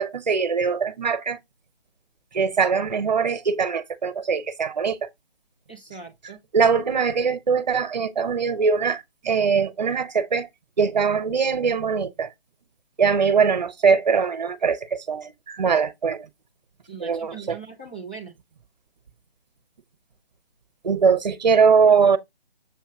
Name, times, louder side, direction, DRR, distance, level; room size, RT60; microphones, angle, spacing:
voice 1, 0.0-1.4 2.3-5.1 6.5-10.5 10.8-12.3 13.0-16.3 17.0-17.6 20.8-22.2, right 5 dB, 45° right, 0.9 m, -21 dB
voice 2, 5.7-6.4 16.9-18.3, right 5 dB, 10° left, 0.5 m, -40 dB
7.3 x 2.9 x 4.9 m
figure-of-eight pair, 145°, 30 cm